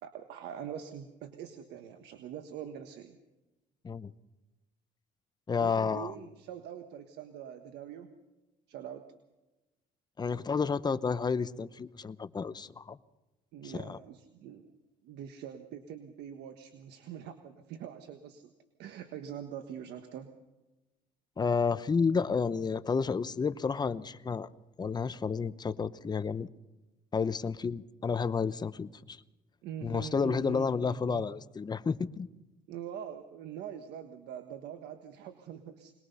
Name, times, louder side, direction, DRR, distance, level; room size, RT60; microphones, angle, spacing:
voice 1, 0.0-3.2 5.6-8.1 8.7-9.0 13.5-14.7 15.0-18.5 18.8-20.3 29.6-31.3 32.7-35.9, right 9 dB, 80° right, 7 dB, 1.4 m, -44 dB
voice 2, 5.5-6.1 10.2-13.0 13.6-14.0 21.4-24.5 24.8-26.5 27.1-29.2 29.8-32.3, left 5 dB, 25° left, 14 dB, 0.8 m, -31 dB
22.5 x 20.5 x 5.6 m, 1.1 s
cardioid pair, 110°, 17 cm